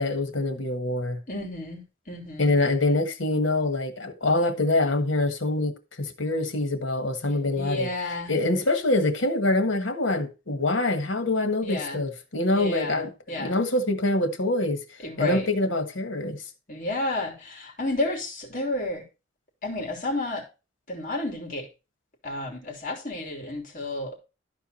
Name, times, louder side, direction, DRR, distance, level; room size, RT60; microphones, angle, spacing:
voice 1, 0.0-1.2 2.4-14.8 15.2-16.4, left 2 dB, 85° left, 1.5 m, -25 dB
voice 2, 1.3-1.8 2.1-2.5 7.6-8.4 11.6-12.0 12.5-13.6 15.0-15.5 16.7-19.0 19.6-20.4 20.9-21.7 22.2-24.2, left 2 dB, 45° left, 3.0 m, -31 dB
12.5 x 4.7 x 4.3 m
head